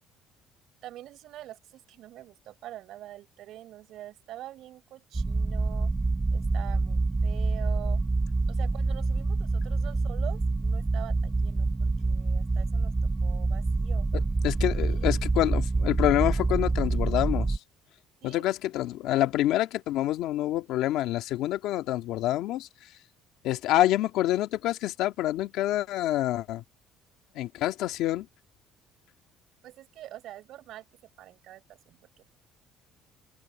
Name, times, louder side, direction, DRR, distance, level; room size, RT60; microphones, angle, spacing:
voice 1, 0.8-5.9 6.3-8.0 8.5-12.9 13.2-14.1 14.9-15.2 18.2-18.4 29.6-30.9 31.2-32.4, right 13 dB, 65° right, 6.3 m, -45 dB
sound 1, 5.1-17.6, right 3 dB, 15° right, 0.5 m, -26 dB
voice 2, 14.1-17.6 18.2-22.9 23.4-26.6 27.3-28.3, left 14 dB, 75° left, 1.7 m, -27 dB
open air
cardioid pair, 140°, 0 cm